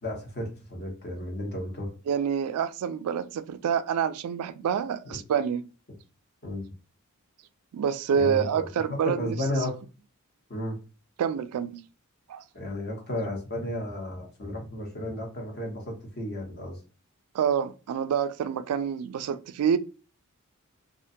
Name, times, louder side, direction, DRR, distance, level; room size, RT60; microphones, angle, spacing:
voice 1, 0.0-1.9 5.0-5.2 6.4-6.6 8.1-9.8 10.5-10.8 12.5-16.8, left 1 dB, 45° left, 0.9 m, -33 dB
voice 2, 2.1-5.6 7.7-9.4 11.2-11.8 12.3-12.4 17.3-19.8, right 7 dB, 85° right, 0.3 m, -27 dB
2.4 x 2.2 x 2.6 m
head